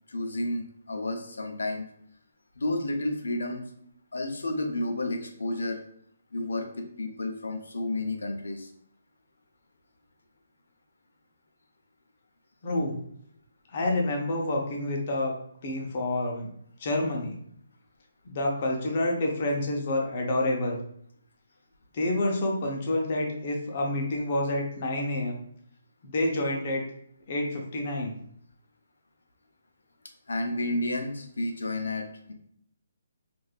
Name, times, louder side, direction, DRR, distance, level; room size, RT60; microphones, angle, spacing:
voice 1, 0.1-1.9 2.6-3.6 4.1-5.8 6.3-8.7 30.3-32.3, left 1 dB, 90° left, 4 dB, 0.6 m, -31 dB
voice 2, 12.6-13.0 13.7-15.3 15.6-16.5 16.8-17.4 18.3-20.8 21.9-25.4 26.0-26.8 27.3-28.1, left 1 dB, 40° left, 0 dB, 0.7 m, -28 dB
3.3 x 2.6 x 2.4 m, 0.67 s
hypercardioid pair, 160°, 0 cm